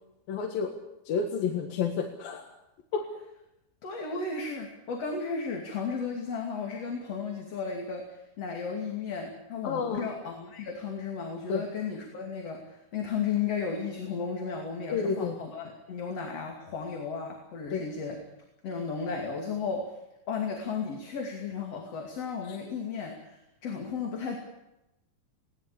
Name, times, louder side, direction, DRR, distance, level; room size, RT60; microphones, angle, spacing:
voice 1, 0.3-0.7 1.1-2.4 2.9-3.0 9.6-10.0 11.5-11.6 14.9-15.4 17.7-17.8, left 6 dB, 65° left, 2 dB, 3.4 m, -29 dB
voice 2, 3.8-18.2 18.6-19.9 20.3-24.4, left 5 dB, 45° left, 1 dB, 3.4 m, -34 dB
22.0 x 18.0 x 8.6 m, 0.91 s
omnidirectional pair, 4.5 m